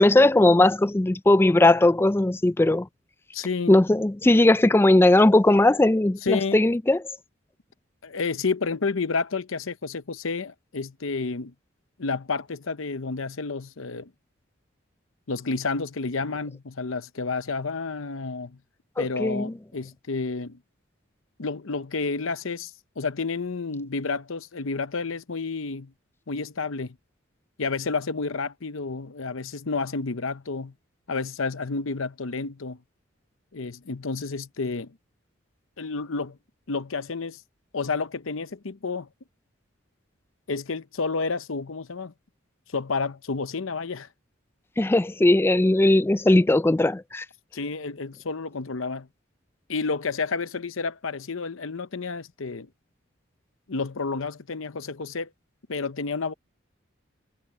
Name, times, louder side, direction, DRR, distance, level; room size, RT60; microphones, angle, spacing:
voice 1, 0.0-2.9 3.7-7.0 19.0-19.5 44.8-47.3, left 2 dB, 10° left, 0.3 m, -19 dB
voice 2, 3.3-3.8 6.2-6.6 8.0-11.5 12.0-14.1 15.3-18.6 19.0-20.6 21.4-25.9 26.3-27.0 27.6-30.7 31.1-32.8 33.5-35.0 35.8-36.4 36.7-37.4 37.7-39.1 40.5-42.1 42.7-44.1 47.5-49.1 49.7-52.7 53.7-55.3 55.7-56.3, left 4 dB, 80° left, 0.8 m, -30 dB
head